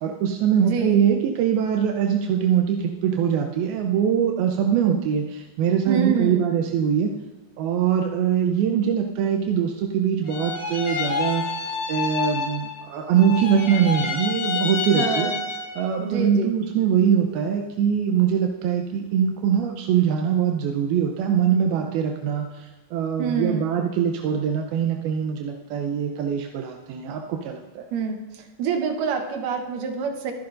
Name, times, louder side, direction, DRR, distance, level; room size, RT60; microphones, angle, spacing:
voice 1, 0.0-7.1 7.6-11.4 11.9-15.3 15.8-27.8, right 8 dB, 85° right, 2 dB, 2.7 m, -23 dB
voice 2, 0.6-1.0 5.9-6.4 14.9-15.4 16.0-16.5 23.2-23.8 27.9-28.2 28.6-30.3, right 5 dB, 70° right, 4 dB, 2.6 m, -26 dB
sound 1, 10.2-12.9 13.1-15.9, left 5 dB, 70° left, 4.6 m, -28 dB
24.5 x 10.5 x 2.6 m, 1.3 s
omnidirectional pair, 4.2 m